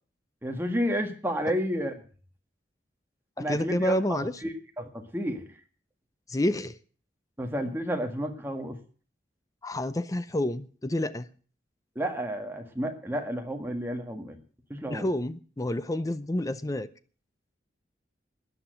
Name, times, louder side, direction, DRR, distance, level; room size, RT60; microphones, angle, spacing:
voice 1, 0.4-1.9 3.4-5.4 7.4-8.8 11.9-14.4 14.7-15.1, equal, 10° right, 1.7 m, -31 dB
voice 2, 3.4-4.3 6.3-6.8 9.6-11.3 14.9-16.9, left 1 dB, 20° left, 0.6 m, -29 dB
13.0 x 9.2 x 7.8 m
head